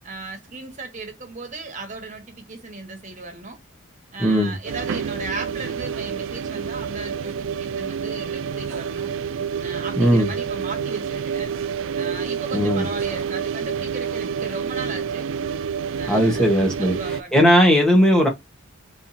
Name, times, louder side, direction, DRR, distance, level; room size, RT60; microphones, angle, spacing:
voice 1, 0.0-3.6 4.1-9.1 9.6-11.5 12.0-15.3 16.0-16.5 16.8-17.5, right 3 dB, 35° right, 1.6 m, -36 dB
voice 2, 4.2-4.5 10.0-10.3 12.5-12.9 16.1-18.3, equal, 5° left, 1.4 m, -17 dB
sound 1, 4.7-17.2, right 7 dB, 65° right, 0.3 m, -28 dB
4.2 x 3.6 x 2.9 m
head